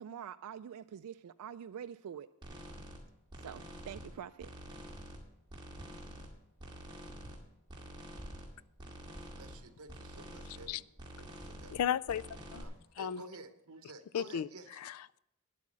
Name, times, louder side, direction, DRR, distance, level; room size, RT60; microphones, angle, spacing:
voice 1, 0.0-2.3 3.4-4.5, right 8 dB, 90° right, 0.4 m, -45 dB
sound 1, 2.4-3.0 3.3-4.1 4.4-5.2 5.5-6.3 6.6-7.4 7.7-8.5 8.8-9.6 9.9-10.7 11.0-11.8 12.1-12.6, equal, 20° right, 2.1 m, -47 dB
voice 2, 9.2-10.9 11.2-11.8 12.5-14.8, right 3 dB, 70° right, 1.0 m, -52 dB
voice 3, 11.7-12.6 13.0-13.2 14.1-14.5 14.8-15.2, left 9 dB, 80° left, 0.4 m, -35 dB
10.5 x 8.4 x 6.2 m
head